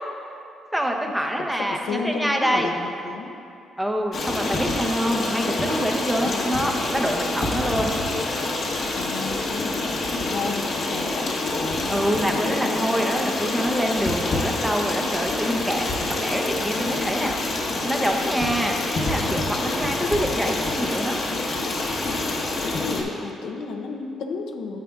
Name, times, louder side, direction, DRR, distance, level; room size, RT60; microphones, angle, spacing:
voice 1, 0.7-2.7 3.8-7.9 11.9-17.3 17.8-21.2, equal, 5° right, 2 dB, 0.7 m, -26 dB
voice 2, 1.9-3.3 6.2-6.8 8.9-13.3 20.0-20.1 22.6-24.8, left 4 dB, 80° left, 3 dB, 0.6 m, -33 dB
Stream, 4.1-23.0, left 2 dB, 55° left, 1.0 m, -27 dB
9.9 x 7.5 x 2.3 m, 2.7 s
cardioid pair, 90°, 0 cm